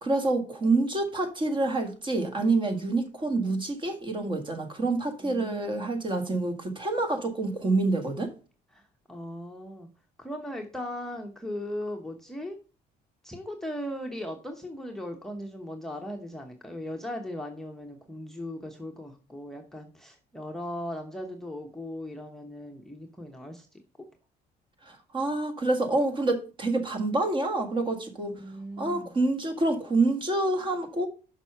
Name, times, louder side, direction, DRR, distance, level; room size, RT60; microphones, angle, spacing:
voice 1, 0.0-8.3 24.8-28.4 28.8-31.1, right 2 dB, 30° right, 1.7 m, -27 dB
voice 2, 5.2-6.2 8.7-8.8 9.1-9.9 10.2-12.6 13.2-23.8 28.4-29.1, left 1 dB, ahead, 1.0 m, -38 dB
6.0 x 5.5 x 5.8 m
cardioid pair, 110°, 17 cm